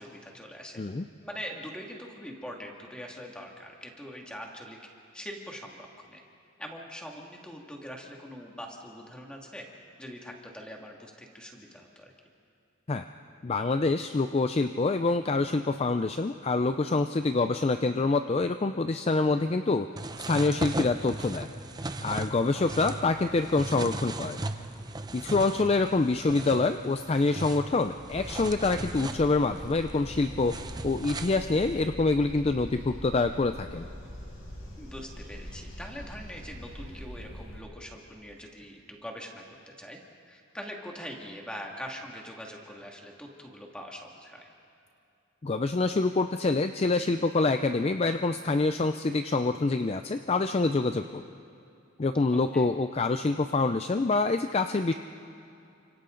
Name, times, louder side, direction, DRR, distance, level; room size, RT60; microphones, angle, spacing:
voice 1, 0.0-0.8 1.2-4.8 5.1-6.2 6.6-9.7 10.0-12.1 22.5-22.6 34.8-40.0 40.3-44.5 52.3-52.7, equal, 5° left, 0 dB, 2.1 m, -43 dB
voice 2, 13.4-19.9 20.3-21.5 22.0-24.4 25.1-30.6 30.8-33.9 45.4-51.2 52.0-54.9, left 3 dB, 30° left, 8 dB, 0.4 m, -26 dB
sound 1, 20.0-31.8, right 2 dB, 20° right, 0.7 m, -38 dB
sound 2, 28.1-37.6, equal, 70° left, 6.3 m, -43 dB
29.5 x 25.5 x 3.9 m, 2.6 s
head